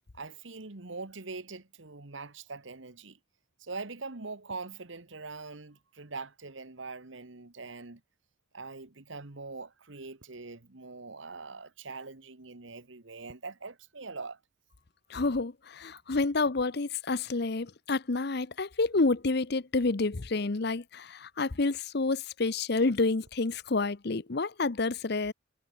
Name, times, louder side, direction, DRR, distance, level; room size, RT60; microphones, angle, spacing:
voice 1, 0.1-3.2 3.6-8.0 8.5-14.4, right 3 dB, 70° right, 1.6 m, -43 dB
voice 2, 15.1-25.3, left 3 dB, 55° left, 0.8 m, -29 dB
head